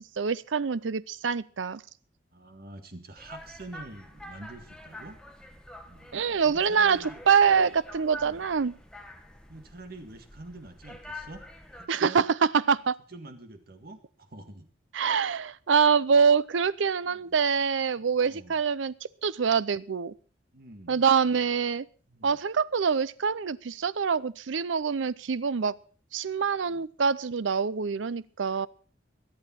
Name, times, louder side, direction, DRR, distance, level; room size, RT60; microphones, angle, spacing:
voice 1, 0.0-1.8 6.1-7.0 7.3-8.7 11.9-12.3 12.5-13.0 14.9-18.9 19.2-20.1 20.9-21.9 22.2-25.8 26.1-28.7, right 6 dB, 90° right, 19 dB, 0.6 m, -25 dB
voice 2, 2.3-5.2 5.9-6.1 6.4-7.2 8.2-8.5 9.5-11.4 11.7-12.3 13.1-14.7 17.0-17.4 18.0-18.6 20.5-21.0 22.1-22.4 26.7-26.9, right 2 dB, 55° right, 7 dB, 1.8 m, -46 dB
sound 1, 3.2-11.9, left 1 dB, 5° left, 1.3 m, -46 dB
22.5 x 8.8 x 4.3 m, 0.40 s
head